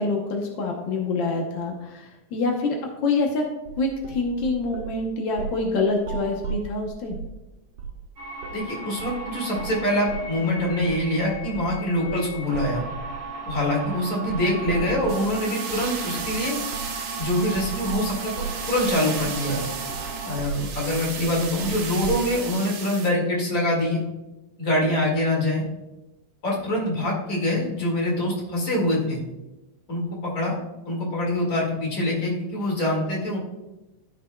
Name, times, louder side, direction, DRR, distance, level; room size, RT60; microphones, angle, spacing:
voice 1, 0.0-2.8 3.0-3.4 3.8-7.2, left 3 dB, 80° left, 1 dB, 1.0 m, -26 dB
sound 1, 3.7-5.0 5.4-5.7 6.0-7.4 7.8-8.0 8.4-8.6 9.0-9.2 9.6-9.8 10.1-15.3 15.7-15.9 16.2-16.5 16.7-17.0 17.2-22.3, right 5 dB, 65° right, 1.9 m, -35 dB
sound 2, 8.2-20.4, right 2 dB, 45° right, 2.1 m, -36 dB
voice 2, 8.5-12.8 13.4-16.6 17.2-19.6 20.2-24.0 24.6-25.6 26.4-29.2 29.9-30.5 30.8-33.4, left 1 dB, 35° left, -2 dB, 2.1 m, -25 dB
sound 3, 15.1-23.1, right 6 dB, 80° right, 2.5 m, -35 dB
13.0 x 5.9 x 2.2 m, 1.0 s
omnidirectional pair, 3.4 m